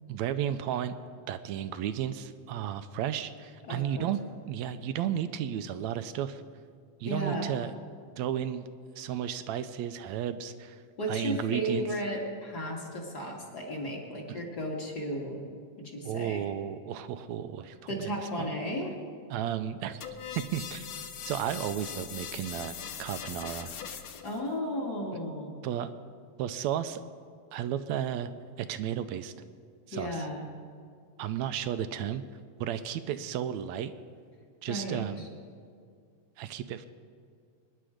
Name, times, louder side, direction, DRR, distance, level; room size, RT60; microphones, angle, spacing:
voice 1, 0.1-0.9 1.3-4.2 4.5-6.4 7.0-7.7 8.2-8.6 9.0-10.8 11.1-11.9 14.3-14.4 16.0-18.1 19.3-20.0 20.5-20.9 21.3-23.7 25.6-25.9 26.4-27.0 27.5-28.3 28.6-29.3 29.9-30.3 31.2-32.2 32.6-33.9 34.6-35.3 36.4-36.9, right 10 dB, 80° right, 11 dB, 1.8 m, -33 dB
voice 2, 3.7-4.1 7.0-7.5 11.0-15.4 15.8-16.4 17.9-18.9 24.2-25.5 29.9-30.4 34.7-35.3, equal, 35° left, -1 dB, 2.3 m, -34 dB
sound 1, 20.0-24.4, left 8 dB, 70° left, 1.3 m, -41 dB
24.0 x 10.5 x 5.0 m, 2.3 s
omnidirectional pair, 3.4 m